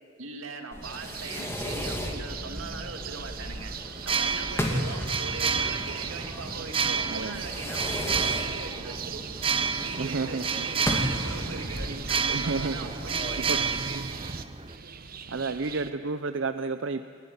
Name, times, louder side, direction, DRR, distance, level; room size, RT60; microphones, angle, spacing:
voice 1, 0.2-3.7 4.0-9.2 9.8-14.0 14.3-14.4, right 4 dB, 85° right, 5 dB, 2.2 m, -40 dB
Fireworks, 0.7-13.8, equal, 15° left, 2.1 m, -36 dB
sound 1, 0.8-15.9, right 6 dB, 45° right, 0.9 m, -40 dB
sound 2, 4.0-14.8, right 6 dB, 25° right, 0.7 m, -31 dB
voice 2, 7.1-7.4 10.0-10.7 12.3-12.8 13.4-13.6 15.3-17.0, right 3 dB, 65° right, 10 dB, 0.6 m, -31 dB
28.5 x 12.0 x 9.8 m, 2.2 s
head